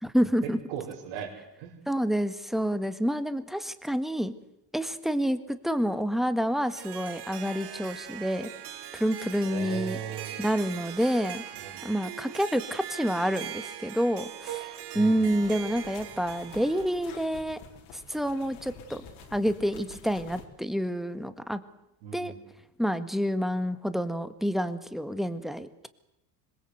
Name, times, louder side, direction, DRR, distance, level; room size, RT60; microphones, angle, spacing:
voice 1, 0.0-0.6 1.9-4.3 4.7-8.5 8.9-10.0 10.4-11.4 11.8-17.6 18.1-19.0 19.3-21.6 22.1-22.3 22.8-25.9, equal, ahead, 11 dB, 1.7 m, -28 dB
voice 2, 0.7-1.3 1.6-1.8 9.4-10.7 11.6-11.9 14.9-15.4 22.0-22.4, right 8 dB, 70° right, -4 dB, 5.5 m, -38 dB
Harp, 6.5-17.0, right 11 dB, 50° right, 2.3 m, -41 dB
sound 1, 15.0-20.4, left 5 dB, 70° left, 4.7 m, -49 dB
26.0 x 22.0 x 8.2 m, 0.85 s
supercardioid pair, 105°, 50 cm